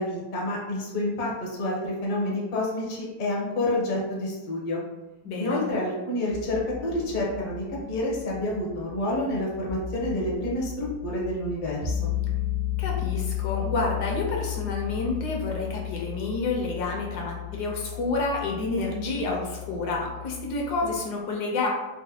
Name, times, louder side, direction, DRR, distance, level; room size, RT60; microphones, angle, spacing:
voice 1, 0.0-4.8 5.4-12.1, left 1 dB, 50° left, -3 dB, 0.6 m, -28 dB
voice 2, 5.2-5.6 12.8-21.7, left 3 dB, 75° left, -1 dB, 1.2 m, -29 dB
sound 1, 6.3-21.0, left 11 dB, 50° right, 0.5 m, -34 dB
3.9 x 2.1 x 2.7 m, 1.1 s
omnidirectional pair, 1.8 m